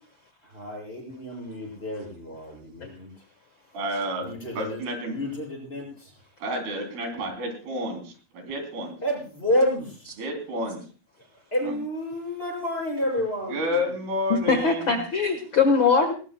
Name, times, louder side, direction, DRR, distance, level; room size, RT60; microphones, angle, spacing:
voice 1, 0.4-3.1 4.2-4.8 5.1-6.1 9.0-10.1 11.5-13.8, left 1 dB, 15° left, -1 dB, 6.0 m, -29 dB
voice 2, 3.7-4.3 4.6-5.2 6.4-8.9 10.2-10.8 11.6-11.8 13.5-15.0, equal, 75° right, 4 dB, 5.1 m, -30 dB
voice 3, 14.3-16.1, left 5 dB, 80° left, 6 dB, 1.1 m, -21 dB
20.0 x 19.0 x 2.2 m, 0.38 s
omnidirectional pair, 4.5 m